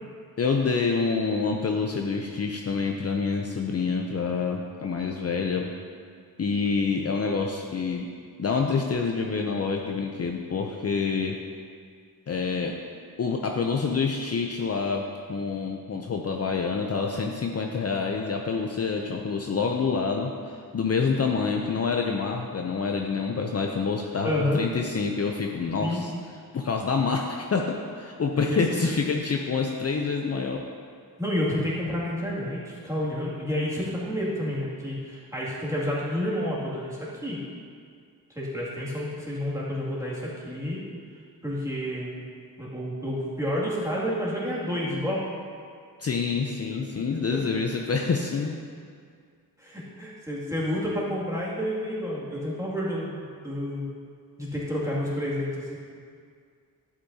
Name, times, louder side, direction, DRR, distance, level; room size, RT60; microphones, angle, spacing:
voice 1, 0.4-5.7 6.4-8.1 8.4-11.4 12.3-12.8 13.2-26.1 26.5-30.7 46.0-48.6, left 5 dB, 45° left, 1 dB, 0.6 m, -27 dB
voice 2, 24.2-24.6 25.8-26.0 28.5-29.0 31.2-37.4 38.3-40.8 41.4-42.1 42.6-45.2 47.0-47.1 47.3-47.4 49.6-53.9 54.4-55.8, left 1 dB, 10° right, -7 dB, 2.3 m, -29 dB
11.5 x 8.7 x 2.8 m, 2.1 s
wide cardioid pair, 110°, 36 cm